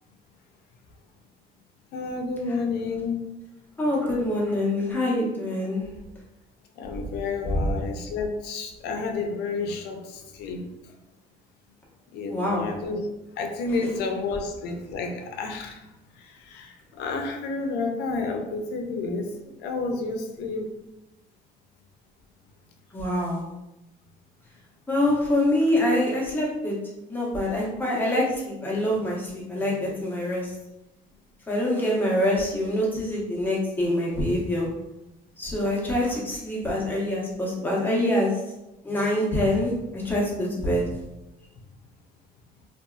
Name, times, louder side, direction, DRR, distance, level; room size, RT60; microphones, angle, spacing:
voice 1, 1.9-3.3 6.8-10.9 12.1-13.1 13.3-15.9 16.2-20.7, left 3 dB, 80° left, 3 dB, 0.5 m, -30 dB
voice 2, 3.8-5.8 7.5-7.7 12.3-12.7 22.9-23.4 24.9-26.8 27.1-30.5 31.5-34.7 35.4-38.3 38.8-40.8, left 1 dB, 10° left, -4 dB, 0.8 m, -25 dB
2.6 x 2.3 x 2.3 m, 0.94 s
cardioid pair, 110°, 17 cm